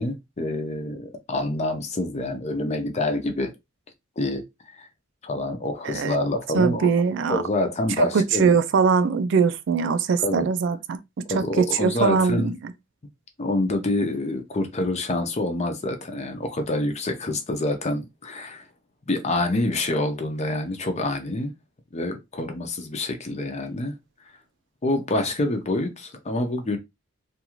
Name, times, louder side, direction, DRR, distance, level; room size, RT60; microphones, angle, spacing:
voice 1, 0.0-3.5 4.2-4.4 4.8-4.9 5.2-6.9 7.3-8.5 10.2-10.5 11.3-12.5 13.4-18.7 19.1-21.5 21.9-23.9 24.8-26.8, left 2 dB, 35° left, 0.6 m, -27 dB
voice 2, 5.8-6.2 6.5-7.4 8.0-11.0 11.3-12.5, right 5 dB, 65° right, 0.4 m, -21 dB
2.5 x 2.4 x 2.9 m
head